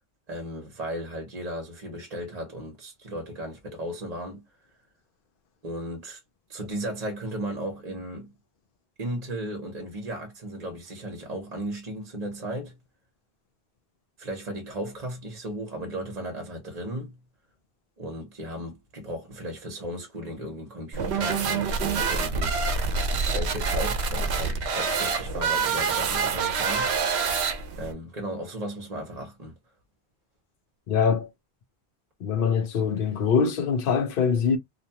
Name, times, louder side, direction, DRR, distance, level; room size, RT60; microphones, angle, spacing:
voice 1, 0.3-4.5 5.6-6.2 6.5-8.3 9.0-12.8 14.2-17.2 18.0-22.6 23.2-26.9 27.8-29.5, right 1 dB, 40° right, 0.8 m, -35 dB
sound 1, 20.9-27.9, right 5 dB, 80° right, 0.9 m, -26 dB
voice 2, 30.9-31.3 32.2-34.6, left 6 dB, 60° left, 0.7 m, -23 dB
2.6 x 2.2 x 2.7 m
omnidirectional pair, 1.1 m